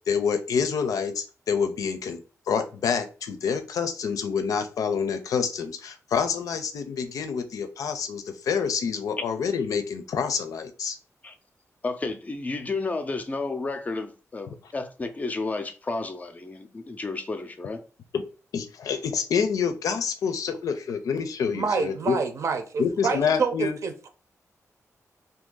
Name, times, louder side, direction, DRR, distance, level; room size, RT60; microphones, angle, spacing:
voice 1, 0.1-2.2 2.5-11.0 18.1-18.2 18.5-22.2 22.8-23.8, left 6 dB, 90° left, 0.5 m, -27 dB
voice 2, 11.8-17.8, left 3 dB, 25° left, 0.5 m, -32 dB
voice 3, 21.5-24.1, right 5 dB, 60° right, 0.7 m, -27 dB
2.7 x 2.6 x 3.8 m
wide cardioid pair, 130°, 6 cm